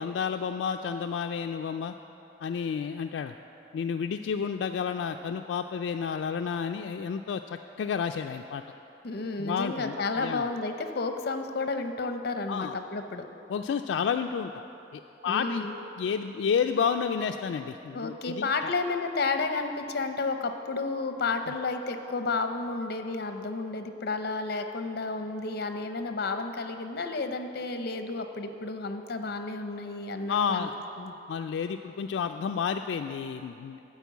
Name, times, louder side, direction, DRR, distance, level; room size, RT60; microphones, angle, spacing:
voice 1, 0.0-1.9 2.4-3.3 3.7-8.6 9.4-10.5 12.5-12.7 13.5-14.5 14.9-15.7 16.0-18.7 30.3-30.7 31.3-33.9, left 6 dB, 80° left, 6 dB, 0.3 m, -30 dB
voice 2, 9.0-13.2 15.3-15.7 17.9-30.7 31.0-31.1, left 3 dB, 60° left, 7 dB, 0.7 m, -31 dB
12.0 x 4.4 x 8.1 m, 2.9 s
head